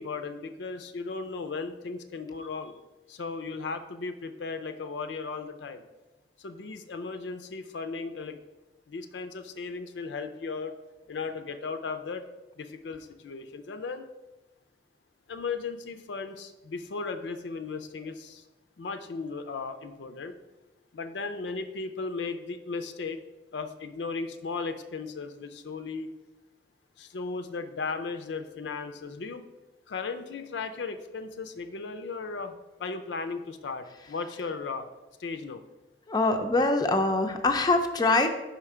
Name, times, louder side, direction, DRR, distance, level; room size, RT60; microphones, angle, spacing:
voice 1, 0.0-2.7 3.1-5.8 6.4-8.4 8.9-10.7 11.1-12.3 12.6-14.1 15.3-18.4 18.8-20.4 20.9-23.2 23.5-26.1 27.0-29.4 29.9-32.5 32.8-34.9 35.2-35.7, left 4 dB, 80° left, 9 dB, 0.5 m, -36 dB
voice 2, 36.1-38.3, left 2 dB, 25° left, 5 dB, 0.4 m, -24 dB
5.7 x 4.4 x 4.8 m, 1.1 s
head